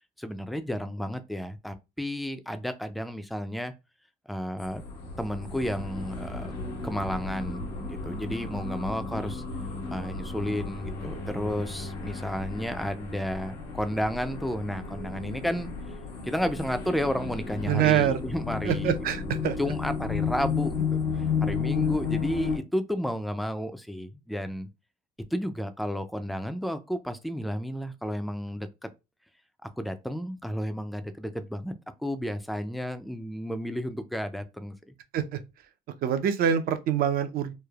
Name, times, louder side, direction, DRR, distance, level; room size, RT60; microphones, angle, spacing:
voice 1, 0.2-3.7 4.3-4.8 5.2-6.5 6.8-9.4 9.9-15.7 16.2-18.9 19.6-20.8 21.1-24.7 25.3-28.7 29.8-31.7 32.0-34.9, equal, ahead, 0.3 m, -32 dB
sound 1, 4.6-22.6, left 5 dB, 85° left, 0.8 m, -33 dB
voice 2, 17.7-18.2 18.6-19.6 35.1-35.4 36.0-37.5, right 9 dB, 65° right, 0.5 m, -25 dB
3.1 x 2.0 x 2.3 m
cardioid pair, 110°, 17 cm